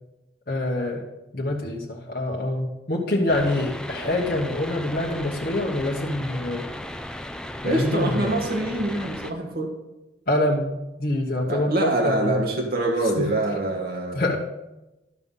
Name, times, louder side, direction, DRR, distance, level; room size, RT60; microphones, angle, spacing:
voice 1, 0.5-1.1 1.3-6.7 7.6-8.3 10.3-10.7 11.0-12.4 13.0-13.3 14.1-14.4, left 1 dB, 55° left, -2 dB, 1.1 m, -25 dB
sound 1, 3.3-9.3, left 1 dB, 5° left, 0.4 m, -36 dB
voice 2, 7.6-9.7 11.5-14.2, right 2 dB, 55° right, 0 dB, 1.5 m, -25 dB
12.5 x 5.7 x 5.5 m, 0.99 s
head